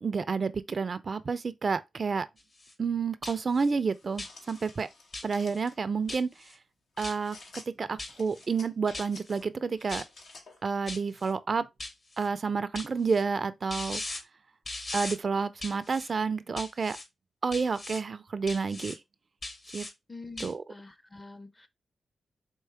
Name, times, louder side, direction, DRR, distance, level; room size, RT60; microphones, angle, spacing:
voice 1, 0.0-2.3 2.8-4.9 5.2-6.3 7.0-10.0 10.6-11.7 12.2-14.0 14.9-17.0 17.4-18.9 19.7-19.9 20.4-20.6, right 5 dB, 50° right, 0.4 m, -30 dB
sound 1, 2.4-2.7 3.2-3.7 4.2-4.6 5.1-5.6 6.1-6.6 7.0-7.5 8.0-8.5 8.9-9.4 9.9-10.4 10.9-11.3 11.8-12.3 12.8-13.2 13.7-14.2 14.7-15.2 15.6-16.1 16.6-17.1 17.5-18.0 18.5-19.0 19.4-19.9 20.4-20.5, left 2 dB, 40° left, 1.0 m, -39 dB
sound 2, 3.9-5.8 7.0-7.7 8.1-9.4 9.8-10.6, left 3 dB, 80° left, 1.1 m, -51 dB
voice 2, 20.1-21.7, left 3 dB, 25° left, 0.6 m, -46 dB
4.5 x 3.1 x 3.3 m
cardioid pair, 60°, 0 cm